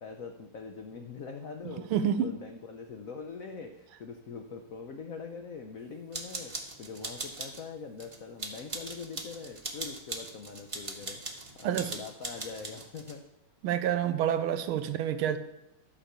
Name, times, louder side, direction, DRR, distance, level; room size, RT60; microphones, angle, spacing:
voice 1, 0.0-11.2 11.5-13.2, left 5 dB, 75° left, 5 dB, 0.7 m, -43 dB
voice 2, 1.6-2.3 11.6-11.9 13.6-15.4, right 9 dB, 80° right, 11 dB, 1.5 m, -28 dB
sound 1, 6.1-7.6 8.0-13.1, right 2 dB, 25° right, 0.7 m, -40 dB
12.0 x 5.2 x 6.7 m, 0.92 s
omnidirectional pair, 2.3 m